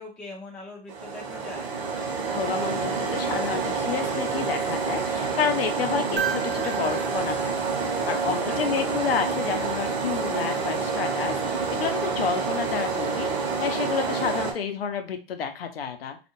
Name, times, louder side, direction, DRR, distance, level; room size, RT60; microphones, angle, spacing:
voice 1, 0.0-1.7 8.5-9.0, left 2 dB, 5° left, -2 dB, 0.4 m, -41 dB
sound 1, 0.9-14.5, right 5 dB, 45° right, 0.8 m, -28 dB
voice 2, 2.3-7.6 7.8-13.3 13.6-16.2, left 7 dB, 70° left, 6 dB, 0.6 m, -30 dB
sound 2, 6.2-8.5 10.5-10.6, right 7 dB, 85° right, 0.6 m, -34 dB
2.4 x 2.1 x 2.9 m, 0.33 s
hypercardioid pair, 120°, 31 cm